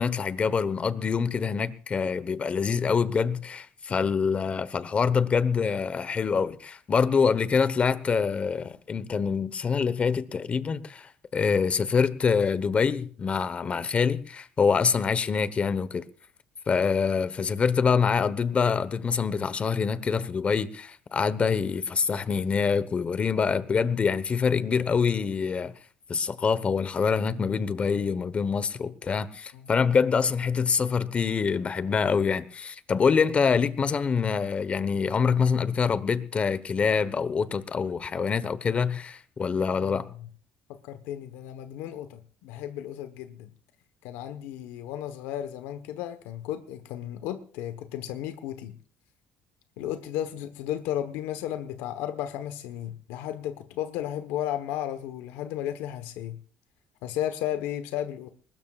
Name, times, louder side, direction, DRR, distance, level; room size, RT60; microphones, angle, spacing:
voice 1, 0.0-16.0 16.7-25.7 26.1-40.0, left 5 dB, 30° left, 1.1 m, -25 dB
voice 2, 39.7-40.3 40.8-43.5 44.0-48.8 49.8-56.4 57.0-58.3, left 11 dB, 90° left, 1.2 m, -34 dB
21.0 x 20.0 x 2.5 m
cardioid pair, 120°, 4 cm